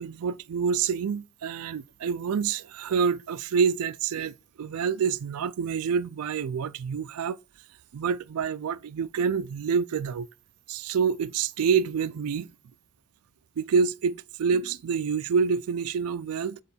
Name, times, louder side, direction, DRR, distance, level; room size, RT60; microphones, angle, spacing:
voice 1, 0.0-7.4 7.9-10.3 10.7-12.5 13.6-16.6, right 6 dB, 90° right, 0.4 m, -27 dB
7.9 x 3.1 x 4.2 m
head